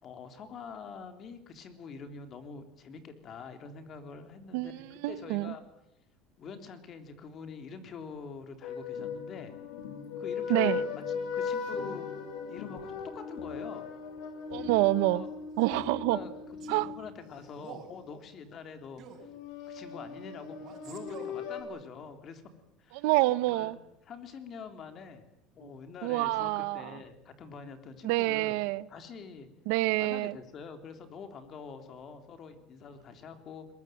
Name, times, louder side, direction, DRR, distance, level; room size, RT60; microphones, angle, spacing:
voice 1, 0.0-5.6 6.4-9.5 10.2-10.8 11.1-12.1 12.5-13.9 15.1-15.3 16.1-16.4 16.6-19.0 19.7-22.4 22.8-23.1 23.5-23.7 24.1-25.3 25.5-28.6 28.9-29.5 30.0-33.7, left 5 dB, 35° left, 3.7 m, -45 dB
voice 2, 4.5-5.5 10.5-10.8 14.5-15.2 15.6-16.2 16.7-16.9 22.9-23.8 25.6-25.7 26.0-27.0 28.0-28.8 29.7-30.3, right 19 dB, 75° right, 0.8 m, -27 dB
sound 1, 8.6-17.7 19.2-21.6, left 5 dB, 65° left, 7.5 m, -38 dB
sound 2, 8.9-17.2, left 11 dB, 85° left, 2.7 m, -48 dB
Male speech man speaking, 15.5-15.9 16.6-16.9 17.6-18.0 19.0-19.3 20.6-21.4, right 7 dB, 45° right, 5.8 m, -48 dB
22.0 x 21.5 x 9.4 m
cardioid pair, 140°, 0 cm